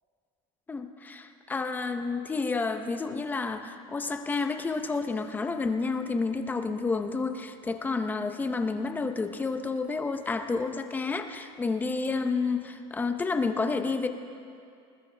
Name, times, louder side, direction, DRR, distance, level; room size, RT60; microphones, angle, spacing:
voice 1, 0.7-14.1, left 4 dB, 10° left, 7 dB, 0.6 m, -30 dB
20.5 x 20.5 x 3.3 m, 2.4 s
cardioid pair, 165°, 16 cm